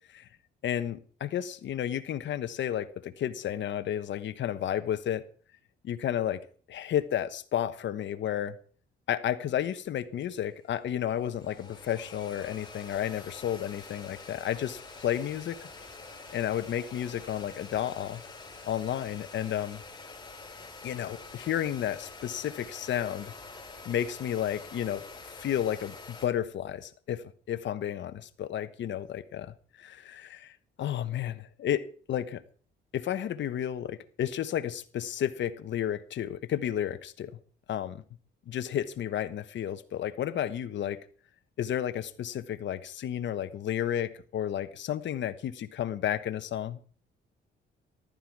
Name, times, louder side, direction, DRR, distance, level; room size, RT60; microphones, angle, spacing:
voice 1, 0.6-5.2 5.8-6.4 6.7-8.6 9.1-15.6 16.3-18.2 18.7-19.8 20.8-23.3 23.8-25.0 25.4-30.5 30.8-32.4 32.9-37.3 37.7-38.0 38.5-41.0 41.6-46.8, left 10 dB, 65° left, 1.3 m, -32 dB
sound 1, 9.9-10.4 10.7-26.3, left 3 dB, 20° left, 4.4 m, -47 dB
14.5 x 12.5 x 4.8 m
cardioid pair, 90°, 20 cm